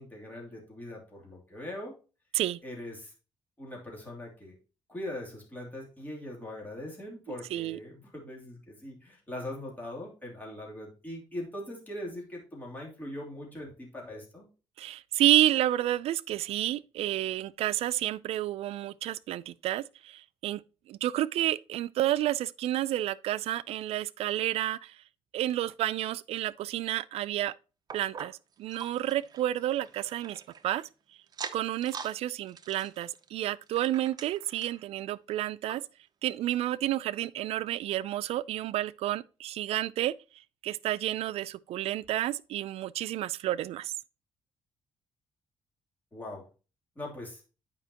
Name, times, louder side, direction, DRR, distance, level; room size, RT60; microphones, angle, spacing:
voice 1, 0.0-1.9 2.6-3.1 3.6-4.6 4.9-14.5 46.1-46.4 47.0-47.4, left 1 dB, 15° left, 2.9 m, -41 dB
voice 2, 14.8-20.6 20.9-24.9 25.3-27.5 27.9-28.3 28.6-30.8 31.5-35.8 36.2-40.1 40.6-43.9, right 13 dB, 75° right, 0.4 m, -30 dB
sound 1, 27.9-30.9 31.3-32.2 32.5-34.8 35.3-35.4 35.7-35.8 36.4-36.5, right 6 dB, 40° right, 0.6 m, -44 dB
9.0 x 5.1 x 2.9 m
cardioid pair, 110°, 10 cm